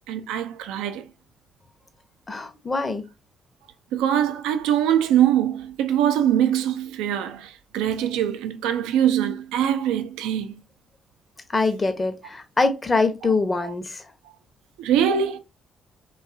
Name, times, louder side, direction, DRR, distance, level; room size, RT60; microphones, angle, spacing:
voice 1, 0.1-1.0 3.9-10.5 13.2-13.3 13.6-13.7 14.2-14.3 14.8-15.4, right 10 dB, 80° right, 0.3 m, -23 dB
voice 2, 2.3-3.0 11.5-14.0, left 3 dB, 30° left, 0.7 m, -24 dB
2.6 x 2.3 x 2.4 m
hypercardioid pair, 45°, 0 cm